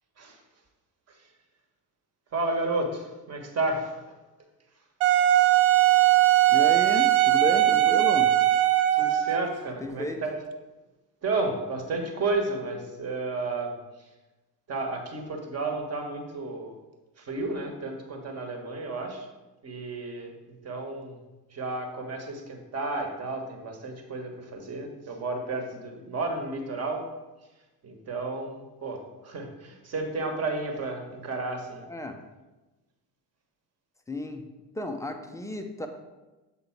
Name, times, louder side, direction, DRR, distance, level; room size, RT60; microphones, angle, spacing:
voice 1, 2.3-4.1 8.9-10.4 11.2-13.7 14.7-16.8 17.2-19.3 19.6-20.3 20.6-21.2 21.5-27.0 27.8-31.8, right 3 dB, 30° right, 3 dB, 1.3 m, -32 dB
Wind instrument woodwind instrument, 5.0-9.5, right 14 dB, 60° right, 0.6 m, -20 dB
voice 2, 6.5-8.3 9.8-10.2 31.8-32.2 34.1-34.5 34.8-35.9, left 1 dB, 5° left, 5 dB, 0.5 m, -32 dB
7.1 x 3.7 x 4.5 m, 1.1 s
figure-of-eight pair, 55°, 48 cm